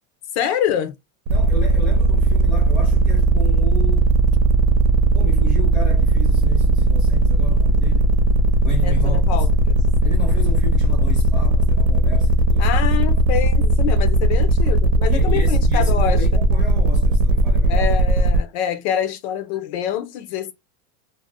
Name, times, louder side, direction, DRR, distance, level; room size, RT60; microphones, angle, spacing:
voice 1, 0.3-0.9 8.8-9.8 12.6-16.4 17.7-20.5, left 9 dB, 55° left, 0.5 m, -26 dB
voice 2, 1.3-4.1 5.1-8.1 8.6-9.5 10.0-13.2 15.1-17.9, equal, 5° right, 0.6 m, -34 dB
sound 1, 1.3-18.4, right 2 dB, 70° right, 0.8 m, -17 dB
2.5 x 2.0 x 3.3 m
supercardioid pair, 155°, 40 cm